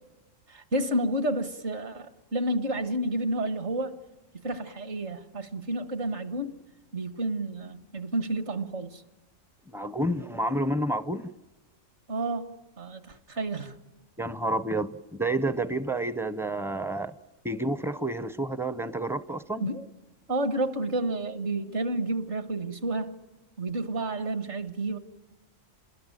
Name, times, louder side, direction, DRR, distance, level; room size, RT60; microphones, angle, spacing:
voice 1, 0.5-4.0 4.4-6.6 6.9-9.0 12.1-13.8 19.6-19.9 20.3-23.2 23.6-25.0, right 1 dB, 60° right, 1.9 m, -30 dB
voice 2, 9.7-11.3 14.2-17.1 17.4-19.7, right 1 dB, 5° right, 0.5 m, -29 dB
28.5 x 21.0 x 9.1 m
omnidirectional pair, 1.4 m